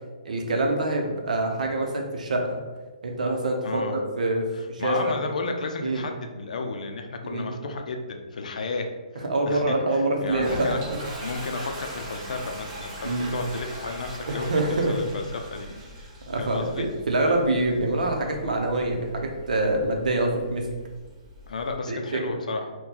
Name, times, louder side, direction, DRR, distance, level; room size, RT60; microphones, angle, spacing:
voice 1, 0.2-2.6 3.0-5.2 5.8-6.0 7.2-7.4 9.2-10.7 13.0-13.3 14.3-15.0 16.3-20.7 21.9-22.4, right 2 dB, 85° right, 2 dB, 0.6 m, -25 dB
voice 2, 3.6-4.1 4.5-8.9 9.1-10.8 11.2-15.7 16.4-16.9 21.5-22.7, left 3 dB, 75° left, 4 dB, 0.5 m, -33 dB
Toilet flush, 10.3-21.7, equal, 30° right, 0.7 m, -40 dB
2.9 x 2.2 x 3.7 m, 1.3 s
hypercardioid pair, 160°, 4 cm